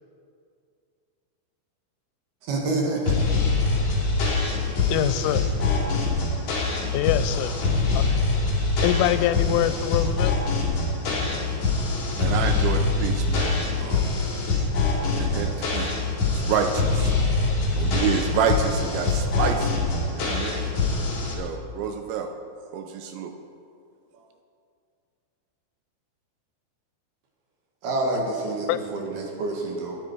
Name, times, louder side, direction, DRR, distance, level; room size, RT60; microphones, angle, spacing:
voice 1, 2.4-3.3 27.8-30.0, right 2 dB, 60° right, -1 dB, 3.2 m, -27 dB
sound 1, 3.1-21.3, left 3 dB, 45° left, 3.3 m, -24 dB
voice 2, 4.9-5.5 6.9-7.5 7.9-8.3 8.8-10.3 28.1-28.3 28.7-28.8, left 12 dB, 90° left, 13 dB, 3.1 m, -24 dB
voice 3, 12.2-14.2 15.1-15.9 16.3-17.1 17.7-19.8 20.1-20.7 21.3-22.3 22.7-23.3, right 7 dB, 80° right, 6 dB, 2.8 m, -28 dB
21.0 x 10.0 x 4.6 m, 2.4 s
omnidirectional pair, 5.6 m